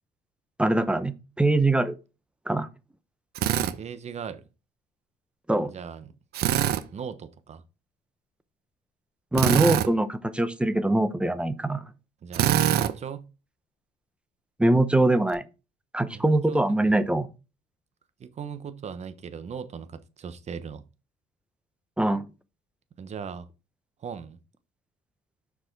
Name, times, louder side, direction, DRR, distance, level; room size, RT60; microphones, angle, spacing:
voice 1, 0.6-2.0 2.5-2.7 5.5-5.7 9.3-11.8 14.6-15.4 15.9-17.3 22.0-22.2, right 2 dB, 5° right, 0.7 m, -23 dB
Drill, 3.4-3.7 6.3-6.8 9.3-9.9 12.3-12.9, right 11 dB, 70° right, 0.7 m, -23 dB
voice 2, 3.5-4.4 5.6-6.1 6.9-7.6 12.2-13.2 16.1-16.9 18.2-20.8 23.0-23.5 24.0-24.4, right 7 dB, 40° right, 1.0 m, -38 dB
6.4 x 4.8 x 4.6 m
cardioid pair, 110°, 17 cm